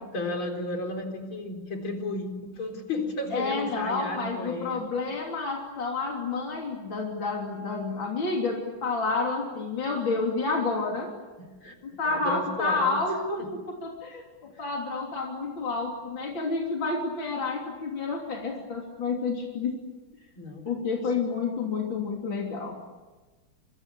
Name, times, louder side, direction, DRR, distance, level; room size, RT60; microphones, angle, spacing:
voice 1, 0.1-4.9 11.6-11.8 12.0-13.0 13.4-13.5 20.4-20.7 20.9-21.1, left 2 dB, 90° left, 3 dB, 5.0 m, -33 dB
voice 2, 3.3-11.1 11.8-19.7 20.7-22.8, left 4 dB, 70° left, 0 dB, 3.9 m, -29 dB
27.0 x 24.5 x 8.6 m, 1.2 s
omnidirectional pair, 2.2 m